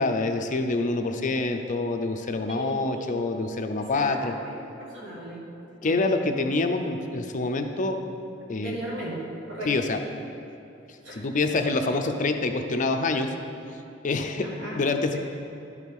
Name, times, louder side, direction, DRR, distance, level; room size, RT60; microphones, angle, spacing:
voice 1, 0.0-4.3 5.8-8.0 8.5-8.8 9.7-10.0 11.1-13.3 14.0-14.5 14.7-15.2, left 3 dB, 40° left, 6 dB, 0.5 m, -26 dB
voice 2, 2.5-3.2 3.8-5.4 5.8-6.0 8.6-9.2 9.5-9.7 11.0-11.2 14.4-14.9, right 1 dB, 65° right, -5 dB, 1.7 m, -37 dB
11.5 x 4.9 x 5.3 m, 2.9 s
head